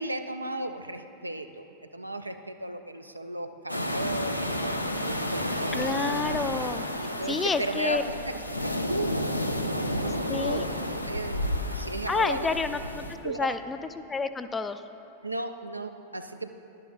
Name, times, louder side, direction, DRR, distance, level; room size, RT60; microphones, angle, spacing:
voice 1, 0.0-1.7 1.9-6.4 6.8-10.7 11.0-12.5 13.2-13.5 15.2-16.5, right 2 dB, 85° right, 7 dB, 0.4 m, -35 dB
sound 1, 3.7-13.2, left 1 dB, 85° left, 0.4 m, -31 dB
voice 2, 5.7-6.9 7.3-8.0 10.3-10.6 12.1-14.8, left 4 dB, 15° left, 10 dB, 0.3 m, -29 dB
11.0 x 10.5 x 2.3 m, 2.7 s
figure-of-eight pair, 90°, 0 cm